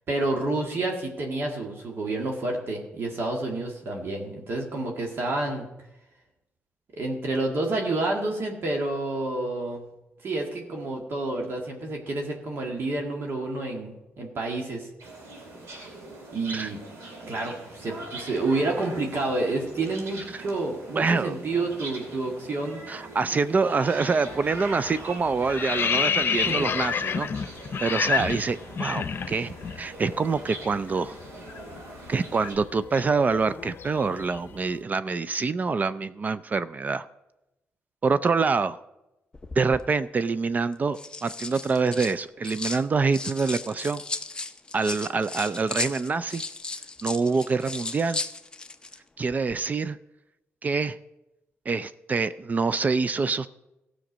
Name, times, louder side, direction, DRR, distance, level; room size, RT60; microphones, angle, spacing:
voice 1, 0.1-5.7 7.0-9.9 10.2-14.9 16.3-16.8 17.3-22.8 26.3-26.7, right 2 dB, 55° right, 1 dB, 1.8 m, -29 dB
sound 1, 15.0-32.5, right 2 dB, 80° right, 2.6 m, -41 dB
voice 2, 21.0-21.4 22.9-27.3 27.8-31.2 32.1-37.1 38.0-38.8 39.6-44.0 44.7-46.4 47.0-48.2 49.2-50.0 50.6-51.0 51.7-53.5, right 4 dB, 35° right, 14 dB, 0.4 m, -26 dB
sound 2, 24.2-24.5 24.8-29.8 30.1-30.3 30.6-34.6, left 6 dB, 55° left, 0.6 m, -29 dB
sound 3, 39.3-39.8 40.7-42.8 43.1-49.0 49.3-49.5, left 3 dB, 20° left, 0.6 m, -35 dB
15.0 x 6.4 x 5.1 m, 0.93 s
cardioid pair, 95°, 5 cm